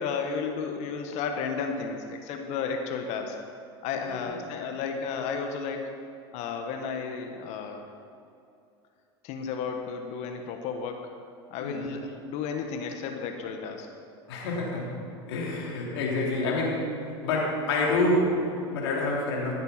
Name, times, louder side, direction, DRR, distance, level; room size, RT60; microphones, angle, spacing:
voice 1, 0.0-3.3 3.8-5.9 6.3-7.8 9.2-11.0 11.5-13.9, left 5 dB, 55° left, 4 dB, 1.4 m, -33 dB
voice 2, 14.3-14.9 15.3-19.5, left 2 dB, 75° left, -2 dB, 3.4 m, -27 dB
14.5 x 7.8 x 5.8 m, 2.6 s
hypercardioid pair, 90°, 14 cm